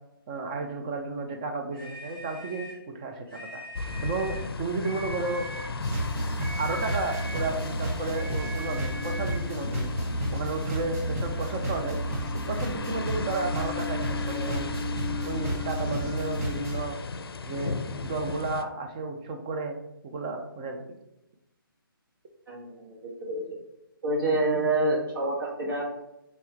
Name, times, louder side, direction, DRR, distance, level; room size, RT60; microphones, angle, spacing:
voice 1, 0.3-3.6 4.0-5.5 6.6-9.9 10.3-12.0 12.5-14.7 15.2-17.0 17.5-19.8 20.0-20.8, right 3 dB, 20° right, 4 dB, 0.3 m, -32 dB
sound 1, 1.7-2.8 3.3-4.5 4.8-5.8 6.4-7.6 8.1-9.5, right 1 dB, ahead, 1.1 m, -41 dB
sound 2, 3.8-18.6, left 4 dB, 85° left, 0.4 m, -37 dB
sound 3, 5.8-16.8, equal, 40° right, 1.5 m, -31 dB
voice 2, 22.5-23.4 24.0-25.8, right 2 dB, 70° right, -4 dB, 1.5 m, -27 dB
4.2 x 2.9 x 3.5 m, 0.87 s
hypercardioid pair, 155°, 12 cm